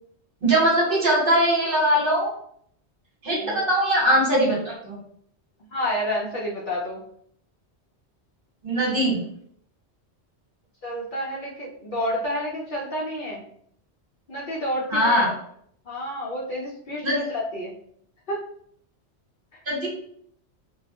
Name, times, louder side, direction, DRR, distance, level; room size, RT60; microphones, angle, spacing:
voice 1, 0.4-2.3 3.2-5.0 8.6-9.2 14.9-15.3 17.0-17.2 19.7-19.9, right 1 dB, 50° right, -5 dB, 1.1 m, -21 dB
voice 2, 5.7-7.0 10.8-13.4 14.3-15.3 15.9-17.7 18.3-18.4, equal, 55° left, -5 dB, 0.6 m, -29 dB
2.3 x 2.0 x 2.8 m, 0.66 s
omnidirectional pair, 1.2 m